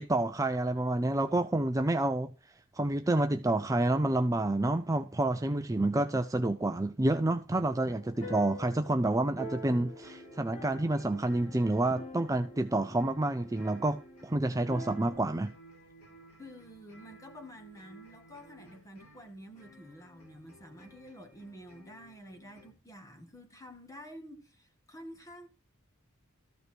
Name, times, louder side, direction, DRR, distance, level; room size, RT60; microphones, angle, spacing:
voice 1, 0.0-2.3 2.7-15.5, right 2 dB, 15° right, 0.5 m, -29 dB
sound 1, 7.7-15.1, equal, 35° left, 4.0 m, -46 dB
voice 2, 8.2-8.5 16.4-25.5, equal, 15° left, 2.0 m, -49 dB
sound 2, 10.0-22.7, left 1 dB, 85° left, 4.0 m, -57 dB
14.0 x 5.3 x 6.3 m
head